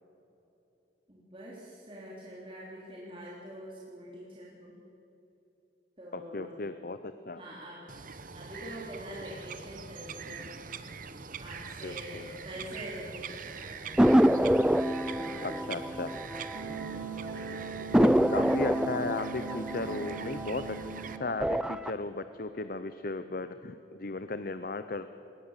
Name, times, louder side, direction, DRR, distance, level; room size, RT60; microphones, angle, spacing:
voice 1, 1.1-4.7 6.0-6.6 7.4-7.8 8.3-10.5 11.4-14.1 15.0-16.0 16.8-18.3, equal, 30° right, -5 dB, 3.5 m, -45 dB
voice 2, 6.1-7.4 11.8-12.3 15.4-16.1 17.9-20.8 21.1-25.1, left 3 dB, 50° left, 11 dB, 0.7 m, -36 dB
Bird vocalization bird call bird song, 7.9-21.2, right 5 dB, 45° right, 0.9 m, -43 dB
sound 1, 14.0-17.0 17.3-17.4 17.9-20.9 21.3-21.9, equal, 5° right, 0.4 m, -26 dB
Wind instrument woodwind instrument, 16.5-21.4, right 6 dB, 65° right, 1.5 m, -41 dB
21.0 x 18.5 x 7.4 m, 3.0 s
head